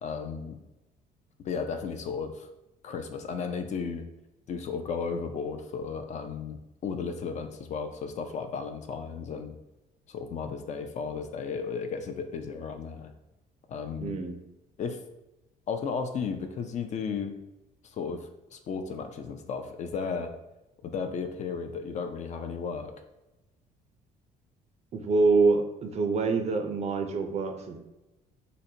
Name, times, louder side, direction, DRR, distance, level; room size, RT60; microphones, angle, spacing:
voice 1, 0.0-0.6 1.4-2.5 2.8-4.1 4.5-9.6 10.1-13.1 13.7-14.1 14.8-15.0 15.7-17.4 17.8-20.3 20.8-22.9, left 5 dB, 45° left, 6 dB, 0.4 m, -34 dB
voice 2, 14.0-14.4 24.9-27.8, right 3 dB, 40° right, 5 dB, 0.4 m, -25 dB
3.9 x 2.1 x 2.7 m, 0.98 s
cardioid pair, 110°, 17 cm